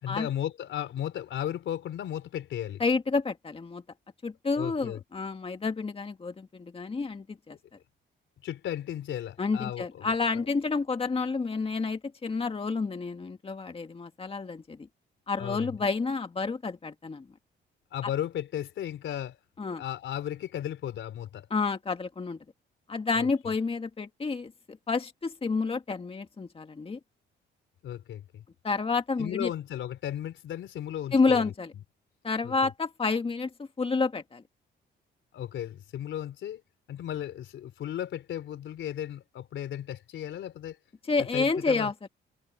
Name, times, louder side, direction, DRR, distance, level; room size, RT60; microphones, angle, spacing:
voice 1, 0.0-2.8 4.6-5.0 8.4-10.4 15.4-15.8 17.9-19.4 19.8-21.5 23.1-23.3 27.8-28.4 29.2-31.5 32.4-32.7 35.3-36.6 36.9-40.8 41.2-41.9, left 11 dB, 75° left, 4.0 m, -35 dB
voice 2, 2.8-3.8 4.2-7.6 9.4-14.9 15.3-17.3 19.6-19.8 21.5-22.4 22.9-27.0 28.6-29.5 31.1-31.7 32.2-34.4 41.0-42.1, left 4 dB, 30° left, 2.0 m, -29 dB
cardioid pair, 90°, 20 cm